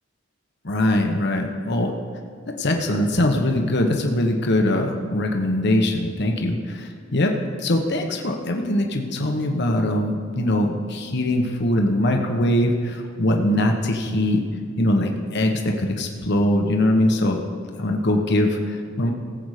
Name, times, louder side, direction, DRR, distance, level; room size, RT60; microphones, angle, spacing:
voice 1, 0.6-1.9 2.5-14.5 14.8-17.4 17.8-19.1, left 1 dB, 60° left, 2 dB, 1.2 m, -22 dB
18.0 x 8.0 x 5.0 m, 2.1 s
head